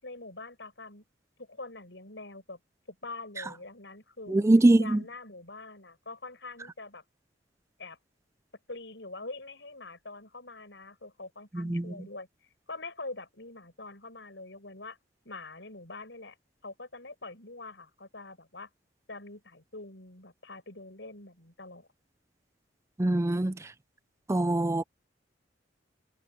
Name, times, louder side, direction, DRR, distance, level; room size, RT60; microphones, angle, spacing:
voice 1, 0.0-1.0 1.4-2.6 2.9-4.4 4.8-7.0 7.8-8.0 8.7-12.3 12.7-15.0 15.2-16.4 16.6-18.7 19.1-21.9, left 3 dB, 70° left, 7.5 m, -44 dB
voice 2, 4.3-5.0 11.5-11.8 23.0-23.6 24.3-24.8, right 2 dB, 15° right, 0.4 m, -23 dB
head